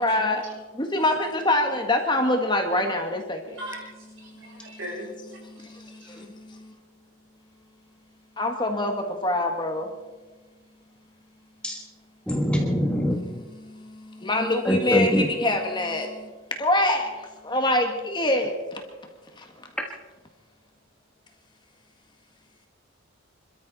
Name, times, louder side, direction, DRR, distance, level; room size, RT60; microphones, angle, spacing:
voice 1, 0.0-3.4 6.1-6.2 8.4-9.9 13.1-13.3 14.2-16.1 16.6-17.1 17.4-18.8, left 1 dB, 20° left, 4 dB, 1.6 m, -24 dB
voice 2, 3.5-5.6 6.0-6.2, equal, 65° right, -3 dB, 7.4 m, -40 dB
voice 3, 12.3-13.2 14.6-15.3, equal, 5° left, 1 dB, 1.4 m, -23 dB
26.5 x 13.0 x 4.1 m, 1.3 s
head